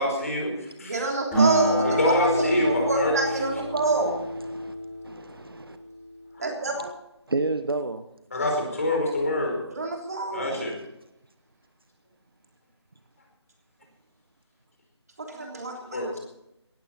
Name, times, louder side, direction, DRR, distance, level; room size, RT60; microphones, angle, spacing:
voice 1, 0.0-1.0 1.8-3.2 6.4-6.5 8.3-9.6 10.3-10.7 15.3-16.2, left 1 dB, 30° left, 1 dB, 4.6 m, -27 dB
voice 2, 0.8-2.0 2.3-4.1 6.4-6.9 9.7-10.6 15.5-16.2, right 3 dB, 35° right, 1 dB, 3.4 m, -27 dB
Acoustic guitar, 1.3-6.2, right 1 dB, 5° left, 5.6 m, -27 dB
voice 3, 4.4-4.7 5.0-5.8 6.7-6.9 7.3-8.0, right 3 dB, 55° right, 10 dB, 1.1 m, -30 dB
18.0 x 14.0 x 4.4 m, 0.86 s
figure-of-eight pair, 170°, 15 cm